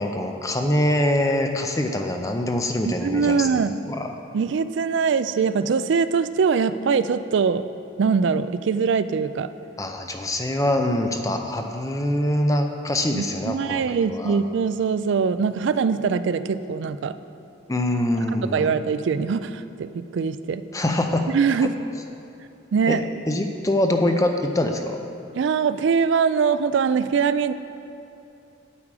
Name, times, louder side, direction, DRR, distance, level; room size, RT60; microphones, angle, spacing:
voice 1, 0.0-4.2 9.8-14.4 17.7-18.7 20.7-21.3 21.6-21.7 22.9-23.0 23.3-25.0, left 1 dB, 15° left, 4 dB, 0.5 m, -24 dB
voice 2, 2.9-3.8 4.3-7.6 8.0-9.5 13.2-17.1 18.5-20.6 21.3-21.7 22.7-23.0 25.4-27.5, right 5 dB, 65° right, 13 dB, 0.3 m, -22 dB
8.9 x 8.5 x 4.8 m, 2.8 s
head